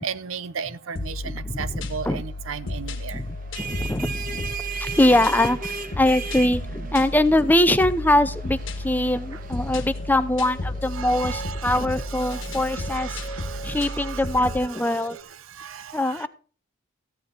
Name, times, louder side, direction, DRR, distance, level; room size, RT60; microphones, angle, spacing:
voice 1, 0.0-3.2 10.9-15.0 15.6-16.3, right 7 dB, 75° right, 15 dB, 0.7 m, -36 dB
sound 1, 0.8-15.2, right 1 dB, 30° left, 1.1 m, -46 dB
sound 2, 1.0-14.7, left 1 dB, 65° left, 1.4 m, -33 dB
voice 2, 1.2-2.2 3.1-4.5 4.8-13.2 13.6-15.2 15.9-16.3, left 1 dB, 10° left, 13 dB, 0.5 m, -23 dB
sound 3, 3.3-14.6, right 5 dB, 40° right, 1.0 m, -38 dB
14.5 x 9.7 x 4.0 m, 0.41 s
head